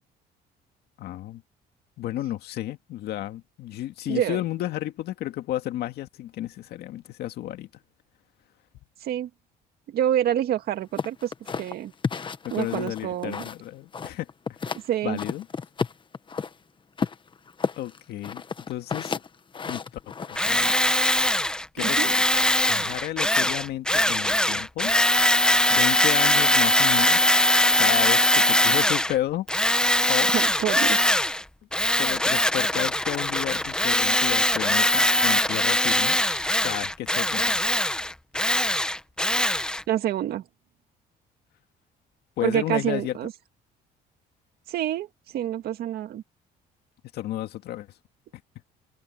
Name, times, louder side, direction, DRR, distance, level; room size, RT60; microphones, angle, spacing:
voice 1, 1.0-1.4 2.0-7.7 12.4-14.3 15.0-15.5 17.8-18.4 18.7-19.1 19.7-19.8 20.3-21.0 21.7-22.2 22.7-24.9 25.7-27.3 27.8-29.5 30.1-30.3 32.0-36.2 36.6-37.6 42.4-43.2 47.1-47.9, left 14 dB, 75° left, 2.0 m, -32 dB
voice 2, 4.1-4.4 9.0-9.3 9.9-11.9 12.5-13.4 14.9-15.2 21.8-22.1 30.3-31.2 39.9-40.4 42.4-43.3 44.7-46.2, right 11 dB, 65° right, 2.1 m, -27 dB
sound 1, 11.0-13.7 13.9-14.9 15.2-16.5 17.0-20.8, left 5 dB, 30° left, 1.2 m, -32 dB
Tools, 20.4-29.1 29.5-31.4 31.7-39.8, left 1 dB, 5° left, 1.3 m, -22 dB
cardioid pair, 110°, 17 cm